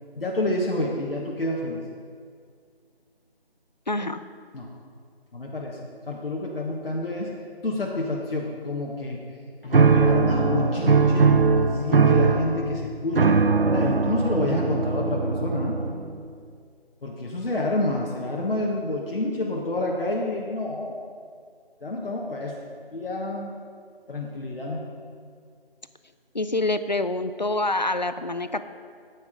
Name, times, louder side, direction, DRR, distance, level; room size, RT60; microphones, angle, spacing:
voice 1, 0.1-1.8 4.5-4.7 5.3-7.3 7.6-9.2 9.6-11.3 11.8-15.8 17.0-21.0 21.8-22.6 22.9-23.5 24.1-24.9, left 2 dB, 65° left, -2 dB, 1.3 m, -28 dB
voice 2, 3.9-4.2 11.3-11.4 26.3-28.6, left 2 dB, 45° left, 12 dB, 0.4 m, -26 dB
sound 1, 9.7-16.2, right 4 dB, 60° right, 0.7 m, -20 dB
9.0 x 8.4 x 4.9 m, 2.1 s
figure-of-eight pair, 175°, 31 cm